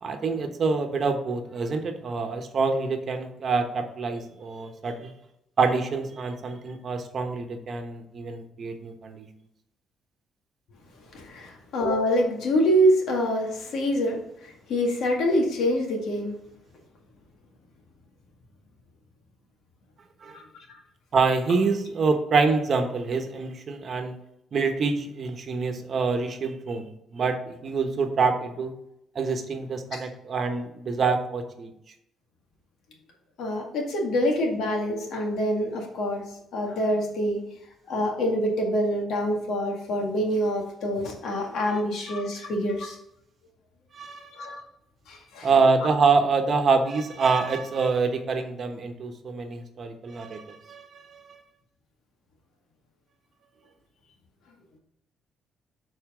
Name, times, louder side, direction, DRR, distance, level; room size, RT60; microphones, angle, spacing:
voice 1, 0.0-5.1 5.6-9.3 20.2-20.4 21.1-24.1 24.5-28.8 29.1-31.7 43.9-44.3 45.4-51.4, right 4 dB, 50° right, 6 dB, 1.1 m, -26 dB
voice 2, 11.1-16.4 20.3-20.4 20.7-20.8 29.9-30.0 33.4-36.3 36.5-37.4 37.9-43.0 44.4-44.6 45.1-45.5, equal, 75° left, 1 dB, 1.9 m, -26 dB
7.1 x 4.3 x 4.9 m, 0.79 s
cardioid pair, 90°, 0 cm